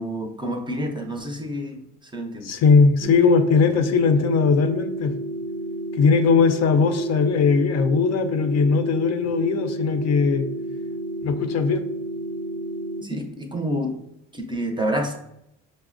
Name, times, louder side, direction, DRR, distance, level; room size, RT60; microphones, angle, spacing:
voice 1, 0.0-2.5 13.0-14.0 14.3-15.2, equal, 15° right, 4 dB, 0.5 m, -28 dB
voice 2, 2.4-5.1 5.9-10.4 11.2-11.8, left 5 dB, 55° left, 8 dB, 0.5 m, -19 dB
sound 1, 3.0-13.0, right 1 dB, 85° right, 0.9 m, -31 dB
4.9 x 2.0 x 2.4 m, 0.81 s
cardioid pair, 95°, 32 cm